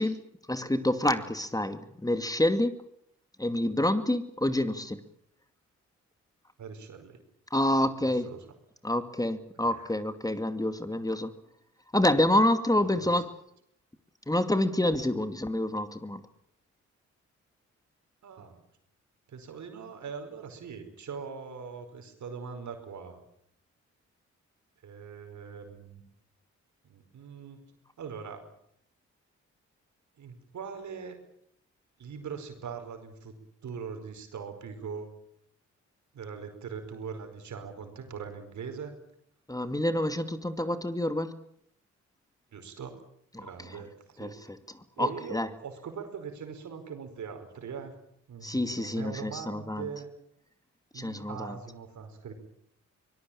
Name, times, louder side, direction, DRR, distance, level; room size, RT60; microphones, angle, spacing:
voice 1, 0.0-2.8 3.4-5.0 7.5-8.3 8.8-11.3 11.9-13.3 14.3-16.2 39.5-41.4 43.3-43.8 44.2-44.6 45.0-45.5 48.4-49.9 50.9-51.5, left 1 dB, 10° left, 10 dB, 2.3 m, -28 dB
voice 2, 6.6-7.2 8.2-8.4 9.7-9.9 12.7-13.1 18.2-18.7 19.3-23.2 24.8-26.0 26.9-27.6 28.0-28.4 30.2-31.2 32.0-33.3 33.6-35.1 36.1-38.9 42.5-42.9 43.4-44.5 45.0-48.0 48.3-50.1 50.9-52.3, right 6 dB, 75° right, 7 dB, 5.0 m, -41 dB
24.0 x 19.0 x 8.9 m, 0.71 s
supercardioid pair, 50°, 29 cm